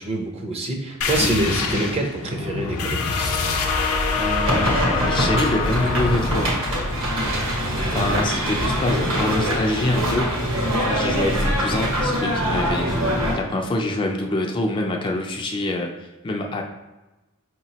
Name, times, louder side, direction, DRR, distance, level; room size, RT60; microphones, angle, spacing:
voice 1, 0.0-3.6, right 2 dB, 25° right, 2 dB, 0.5 m, -26 dB
sound 1, 1.0-10.2, left 4 dB, 75° left, 0.6 m, -26 dB
voice 2, 4.1-4.7 5.1-6.5 7.9-10.4 10.8-16.6, left 1 dB, 20° left, 1 dB, 0.3 m, -25 dB
sound 2, 4.5-13.3, equal, 60° right, 1.1 m, -23 dB
4.9 x 2.9 x 2.8 m, 1.1 s
head